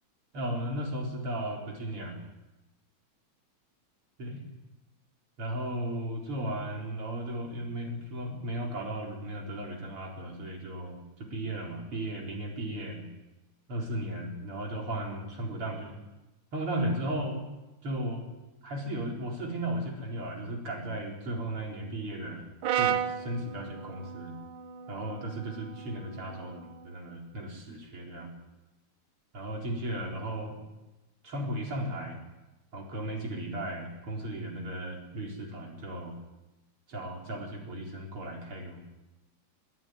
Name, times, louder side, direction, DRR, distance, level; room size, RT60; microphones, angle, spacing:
voice 1, 0.3-2.2 4.2-4.4 5.4-13.0 13.7-16.0 16.5-17.4 17.8-18.3 18.6-24.3 24.9-28.3 29.3-30.6 31.2-32.2 32.7-36.2 36.9-38.8, right 1 dB, 45° right, 0 dB, 5.0 m, -35 dB
Brass instrument, 22.6-26.9, right 9 dB, 80° right, 1.2 m, -34 dB
24.0 x 13.5 x 9.6 m, 1.0 s
omnidirectional pair, 3.4 m